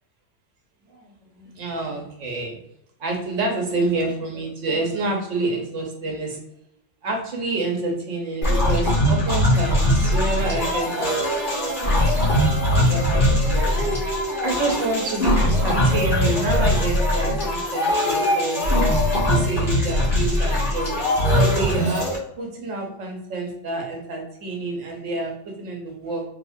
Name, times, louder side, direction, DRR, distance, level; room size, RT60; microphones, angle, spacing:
voice 1, 0.9-2.6 3.0-6.4 7.0-12.1 12.6-13.7 14.4-18.9 19.3-20.9 21.4-22.1 22.4-26.2, right 2 dB, 80° right, 1 dB, 1.2 m, -28 dB
sound 1, 8.4-22.2, left 1 dB, 45° left, 1.2 m, -21 dB
3.6 x 2.9 x 2.6 m, 0.80 s
omnidirectional pair, 1.2 m